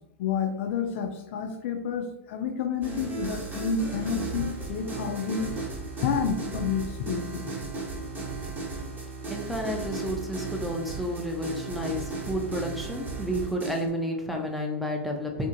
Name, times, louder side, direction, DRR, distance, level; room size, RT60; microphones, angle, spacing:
voice 1, 0.2-5.5 6.0-7.5, left 6 dB, 60° left, 5 dB, 0.4 m, -29 dB
sound 1, 2.8-13.9, right 3 dB, 25° right, 0.8 m, -35 dB
voice 2, 9.3-15.5, equal, ahead, 0 dB, 0.4 m, -31 dB
2.5 x 2.1 x 2.6 m, 0.86 s
hypercardioid pair, 105°, 7 cm